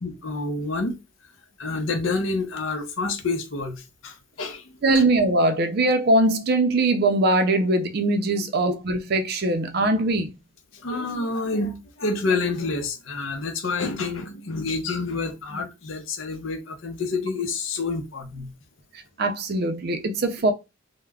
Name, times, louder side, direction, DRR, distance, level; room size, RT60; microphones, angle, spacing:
voice 1, 0.0-1.0 1.6-4.6 4.9-5.0 8.6-8.7 10.8-18.5, left 3 dB, 70° left, 0.6 m, -28 dB
voice 2, 4.8-10.3 19.2-20.5, right 2 dB, 50° right, 0.4 m, -21 dB
2.3 x 2.1 x 3.3 m
head